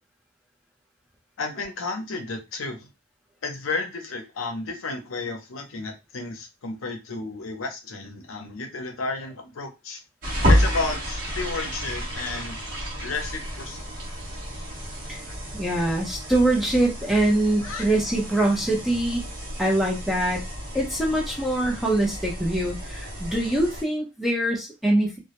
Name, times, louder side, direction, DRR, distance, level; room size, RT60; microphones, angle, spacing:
voice 1, 1.4-2.9 3.4-10.0 10.5-12.6 13.0-13.9 17.6-17.9, left 3 dB, 90° left, 0.6 m, -32 dB
sound 1, 10.2-23.8, equal, 45° right, 0.8 m, -30 dB
voice 2, 15.5-19.2 19.6-20.4 20.7-25.2, right 1 dB, ahead, 0.6 m, -23 dB
2.1 x 2.0 x 2.8 m
head